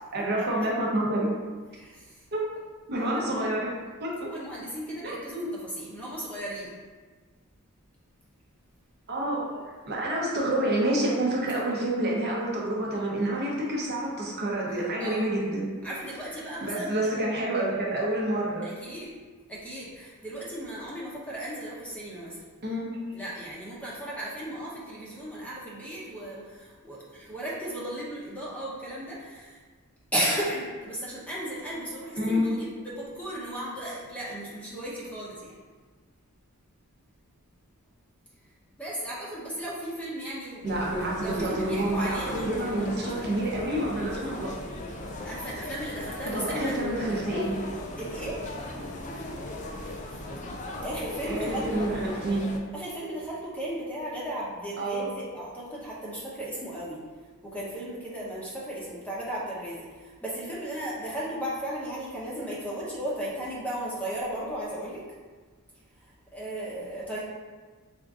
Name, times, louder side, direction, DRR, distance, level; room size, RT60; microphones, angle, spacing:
voice 1, 0.1-1.3 2.3-2.4 2.9-3.7 4.0-4.3 5.0-5.5 9.1-15.7 16.6-18.7 22.6-23.0 32.2-32.5 40.6-44.5 46.2-47.6 51.3-52.5 54.8-55.1, right 1 dB, 50° right, -4 dB, 0.7 m, -28 dB
voice 2, 1.7-2.3 3.0-3.5 4.2-6.7 15.0-15.3 15.8-17.0 18.6-19.1 19.5-22.4 23.1-29.6 30.1-35.5 38.8-40.7 41.2-43.3 45.2-46.7 48.0-48.4 49.1-49.2 49.8-50.2 50.8-51.8 52.7-57.0 57.4-65.0 66.0-67.2, right 1 dB, 5° left, -7 dB, 0.7 m, -35 dB
sound 1, 40.7-52.6, left 1 dB, 35° left, 0.4 m, -37 dB
3.6 x 2.5 x 3.6 m, 1.4 s
head